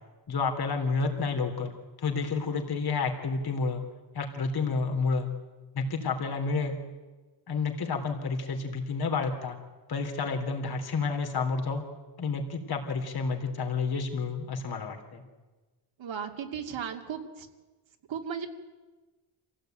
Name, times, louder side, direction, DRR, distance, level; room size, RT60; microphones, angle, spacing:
voice 1, 0.3-3.8 4.1-5.3 5.7-6.8 7.5-9.6 9.9-11.8 12.2-15.2, left 4 dB, 55° left, 3 dB, 3.5 m, -30 dB
voice 2, 16.0-17.5 18.1-18.5, right 7 dB, 80° right, 4 dB, 2.5 m, -35 dB
26.5 x 16.5 x 9.2 m, 1.2 s
wide cardioid pair, 150°, 45 cm